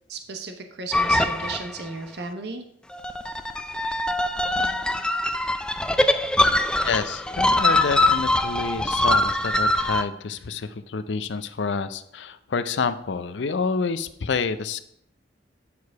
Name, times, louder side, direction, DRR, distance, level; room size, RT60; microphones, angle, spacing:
voice 1, 0.1-2.6, right 4 dB, 65° right, 6 dB, 0.8 m, -34 dB
sound 1, 0.9-1.9 2.9-10.0, left 1 dB, 5° left, 0.3 m, -23 dB
voice 2, 6.8-14.8, left 5 dB, 80° left, 12 dB, 0.5 m, -28 dB
8.5 x 4.8 x 4.7 m, 0.73 s
head